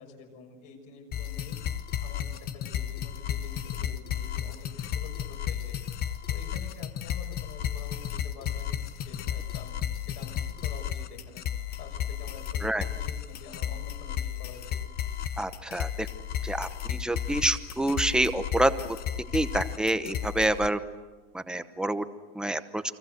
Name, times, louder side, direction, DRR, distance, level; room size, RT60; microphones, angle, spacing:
voice 1, 0.0-1.6 2.0-9.8 10.0-14.8, left 5 dB, 50° left, 3 dB, 6.4 m, -48 dB
sound 1, 1.1-20.7, left 10 dB, 30° left, 1.1 m, -33 dB
voice 2, 15.4-16.1 16.4-18.7 19.3-20.8 21.3-22.0 22.3-22.8, right 1 dB, 5° right, 10 dB, 0.9 m, -27 dB
30.0 x 24.5 x 7.9 m, 1.3 s
supercardioid pair, 165°, 30 cm